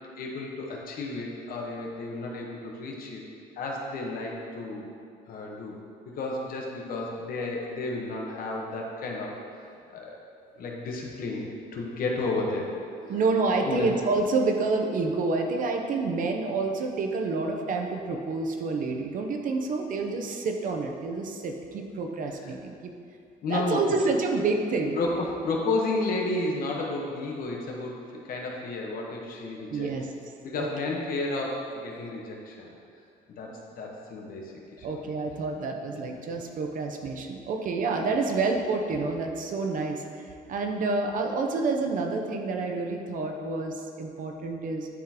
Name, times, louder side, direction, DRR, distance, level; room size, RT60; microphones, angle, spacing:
voice 1, 0.2-3.2 3.6-4.9 5.3-5.8 6.0-10.2 10.5-12.7 13.0-13.1 13.6-13.9 22.4-22.5 23.4-23.8 25.0-29.9 30.4-32.7 33.3-35.0 35.9-36.1, left 2 dB, 60° left, -1 dB, 1.1 m, -32 dB
voice 2, 13.1-22.9 23.5-25.0 29.7-30.0 30.6-30.7 34.8-44.9, right 3 dB, 50° right, 3 dB, 0.7 m, -28 dB
10.5 x 3.7 x 2.9 m, 2.4 s
cardioid pair, 110°, 17 cm